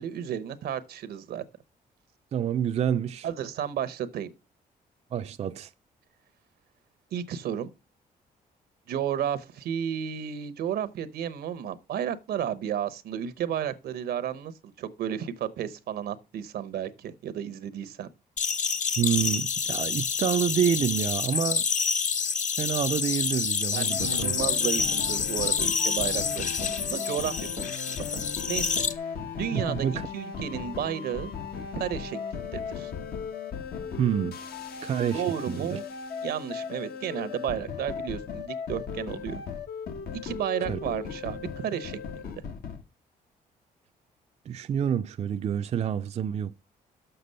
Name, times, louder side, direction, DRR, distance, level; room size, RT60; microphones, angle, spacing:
voice 1, 0.0-1.4 3.2-4.3 7.1-7.7 8.9-18.1 23.7-27.8 28.1-28.2 28.5-28.8 29.3-29.9 30.1-31.3 31.7-32.9 35.1-35.8 36.2-39.4 40.1-42.3, right 9 dB, 80° right, 0.8 m, -33 dB
voice 2, 2.3-3.3 5.1-5.7 19.0-21.7 22.6-24.3 29.5-30.1 34.0-34.4 34.8-35.8 40.7-40.8 44.5-46.6, right 9 dB, 40° right, 0.4 m, -28 dB
sound 1, 18.4-28.9, left 6 dB, 50° left, 0.8 m, -28 dB
sound 2, 23.9-42.8, left 6 dB, 75° left, 1.0 m, -37 dB
6.8 x 5.9 x 5.4 m
cardioid pair, 90°, 16 cm